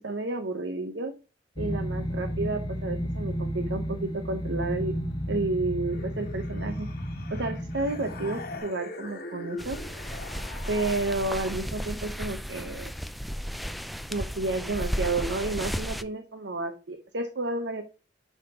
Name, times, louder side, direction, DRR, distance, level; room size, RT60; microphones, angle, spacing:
voice 1, 0.0-1.1 1.6-4.9 5.3-6.9 7.3-9.8 10.7-12.9 14.1-17.8, right 2 dB, 80° right, 6 dB, 0.9 m, -31 dB
sound 1, 1.6-8.6, equal, 25° left, 1.7 m, -32 dB
sound 2, 5.9-11.7, left 3 dB, 55° left, 1.1 m, -43 dB
sound 3, 9.6-16.0, equal, ahead, 0.4 m, -34 dB
9.8 x 5.8 x 2.9 m, 0.32 s
head